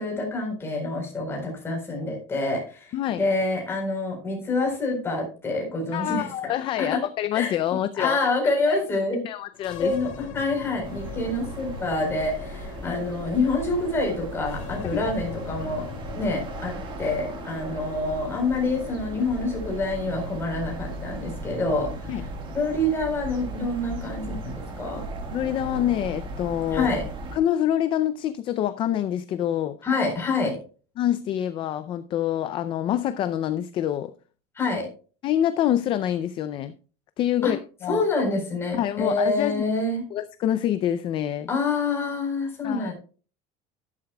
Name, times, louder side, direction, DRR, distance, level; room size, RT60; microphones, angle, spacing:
voice 1, 0.0-7.0 7.3-9.2 9.8-15.9 16.2-22.1 22.5-25.0 26.7-27.0 29.8-30.6 34.6-34.9 37.4-37.5 37.9-40.0 41.5-42.9, left 2 dB, 15° left, 4.1 m, -27 dB
voice 2, 2.9-3.2 5.9-8.2 8.7-8.8 9.1-9.9 14.9-15.0 22.1-22.3 25.3-26.9 27.3-29.8 31.0-34.1 35.2-36.7 37.2-38.0 38.7-39.7 40.1-41.5 42.6-42.9, left 11 dB, 30° left, 0.4 m, -26 dB
sound 1, 9.5-21.0, left 8 dB, 85° left, 2.1 m, -41 dB
sound 2, 10.8-27.4, right 2 dB, 30° right, 1.6 m, -37 dB
11.5 x 11.5 x 2.3 m
cardioid pair, 175°, 16 cm